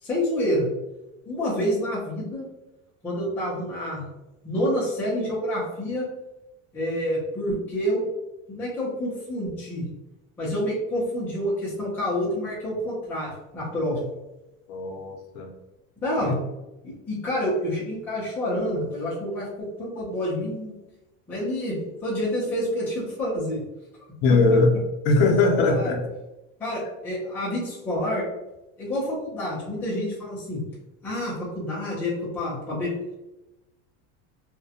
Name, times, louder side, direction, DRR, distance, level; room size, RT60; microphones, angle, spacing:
voice 1, 0.0-0.7 1.3-2.5 3.0-4.1 4.4-6.1 6.7-8.0 8.5-9.9 10.4-14.1 16.0-16.4 16.8-20.7 21.3-23.6 25.6-25.9 26.6-28.3 28.8-30.6 31.0-32.9, equal, 5° left, -7 dB, 0.4 m, -28 dB
voice 2, 14.7-15.5 16.2-16.4 24.2-24.8 25.0-26.1, left 3 dB, 65° left, 2 dB, 0.6 m, -21 dB
2.3 x 2.1 x 2.7 m, 0.98 s
cardioid pair, 175°, 34 cm